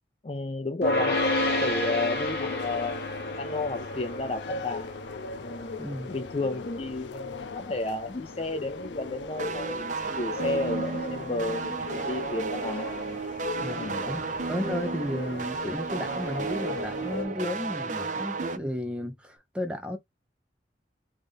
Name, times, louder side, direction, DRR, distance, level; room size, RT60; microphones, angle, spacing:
voice 1, 0.2-1.3 1.6-3.1 3.4-4.9 5.4-12.9 13.8-14.0, left 2 dB, 35° left, 0.5 m, -32 dB
sound 1, 0.8-12.1, left 1 dB, 65° left, 1.3 m, -33 dB
sound 2, 1.1-17.3, left 4 dB, 85° left, 0.5 m, -39 dB
voice 2, 5.8-6.1 13.6-20.0, equal, 5° right, 0.6 m, -34 dB
sound 3, 9.4-18.6, right 4 dB, 45° right, 0.5 m, -33 dB
3.6 x 2.5 x 3.4 m
head